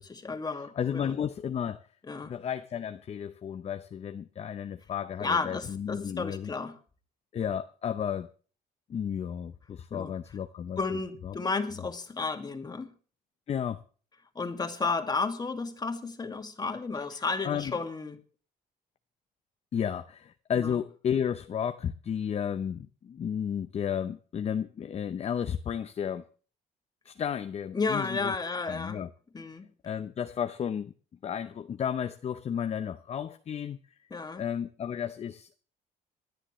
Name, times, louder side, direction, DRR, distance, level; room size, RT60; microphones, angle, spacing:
voice 1, 0.0-1.2 2.0-2.3 5.2-6.8 9.9-10.1 10.8-12.9 14.4-18.2 20.6-20.8 27.7-29.0 29.3-29.7 34.1-34.5, left 4 dB, 25° left, 2.1 m, -32 dB
voice 2, 0.8-1.8 2.3-6.5 7.3-8.3 8.9-10.8 11.2-11.4 13.5-13.8 17.4-17.7 19.7-26.3 27.1-28.3 28.7-29.1 29.8-30.9 31.2-33.8 34.4-35.6, left 8 dB, 40° left, 0.7 m, -33 dB
26.5 x 10.0 x 3.2 m
cardioid pair, 110°, 17 cm